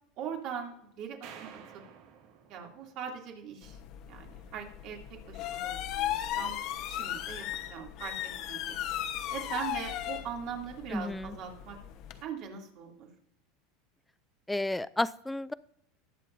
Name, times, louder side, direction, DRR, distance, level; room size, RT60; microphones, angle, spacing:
voice 1, 0.2-1.5 2.5-3.8 4.1-6.6 6.9-8.8 9.3-11.8 12.2-13.1, right 7 dB, 55° right, 1 dB, 2.7 m, -41 dB
sound 1, 1.2-3.6, right 7 dB, 70° right, 2.4 m, -51 dB
sound 2, 3.6-12.2, left 11 dB, 55° left, 1.1 m, -37 dB
voice 2, 10.9-11.4 14.5-15.5, left 2 dB, 5° left, 17 dB, 0.4 m, -32 dB
20.0 x 7.4 x 2.7 m, 0.74 s
supercardioid pair, 125°, 0 cm